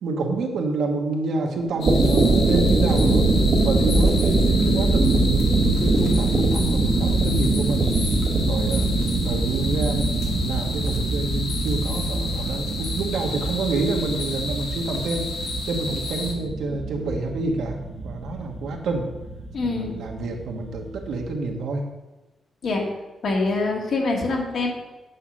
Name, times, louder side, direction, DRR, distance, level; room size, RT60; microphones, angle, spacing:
voice 1, 0.0-3.3 3.6-7.9 8.5-15.3 15.6-17.8 18.0-19.1 19.6-21.9, right 3 dB, 85° right, 2 dB, 1.4 m, -28 dB
sound 1, 1.7-21.3, right 2 dB, 40° right, 1.1 m, -23 dB
sound 2, 1.8-16.3, left 3 dB, 85° left, 1.7 m, -32 dB
voice 2, 19.5-20.0 22.6-22.9 23.2-24.7, left 3 dB, 55° left, 0 dB, 1.9 m, -24 dB
8.4 x 5.6 x 6.2 m, 1.1 s
wide cardioid pair, 170°, 0 cm